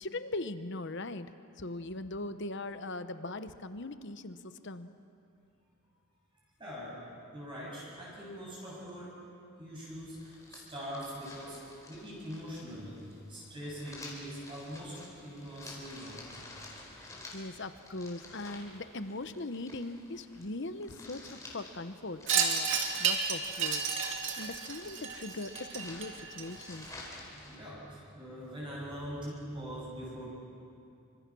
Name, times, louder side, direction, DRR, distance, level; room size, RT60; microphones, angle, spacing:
voice 1, 0.0-4.9 16.9-22.7 23.0-23.9 24.4-26.9, left 2 dB, 55° left, 10 dB, 1.0 m, -40 dB
voice 2, 6.6-7.0 7.3-9.2 9.6-13.0 13.3-16.3 27.3-30.3, equal, 25° right, -6 dB, 7.8 m, -43 dB
sound 1, 9.8-27.6, left 2 dB, 15° left, 4.6 m, -51 dB
Wind chime, 22.3-26.9, right 6 dB, 55° right, 2.7 m, -32 dB
29.0 x 25.5 x 6.2 m, 2.6 s
head